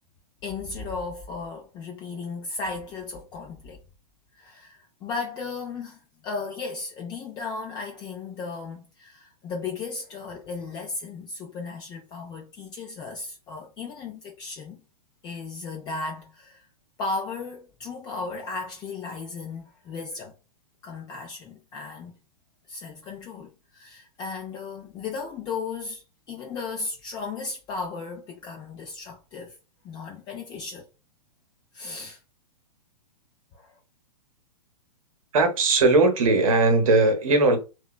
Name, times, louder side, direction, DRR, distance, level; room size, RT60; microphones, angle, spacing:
voice 1, 0.4-3.8 4.3-14.8 15.2-16.6 17.0-20.3 20.8-22.2 22.7-29.6 29.8-30.9 31.7-32.2 33.5-33.8, left 4 dB, 20° left, 0.4 m, -35 dB
voice 2, 35.3-37.6, right 3 dB, 60° right, 0.9 m, -19 dB
2.8 x 2.2 x 2.3 m
figure-of-eight pair, 115°, 20 cm